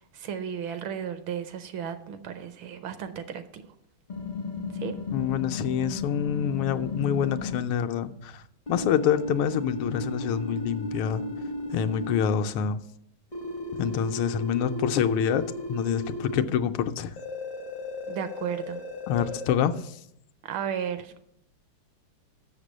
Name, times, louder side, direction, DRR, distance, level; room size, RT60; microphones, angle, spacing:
voice 1, 0.0-3.6 4.7-4.9 18.1-18.8 20.4-21.2, right 8 dB, 75° right, 10 dB, 1.3 m, -34 dB
sound 1, 4.1-7.6 8.7-12.2 13.3-16.4 17.2-19.5, left 2 dB, 50° left, 0.5 m, -35 dB
voice 2, 5.1-8.4 8.7-11.2 11.7-12.8 13.8-15.4 15.7-17.1 19.1-20.0, left 8 dB, 80° left, 8 dB, 1.4 m, -26 dB
6.6 x 6.6 x 6.2 m, 0.75 s
omnidirectional pair, 2.4 m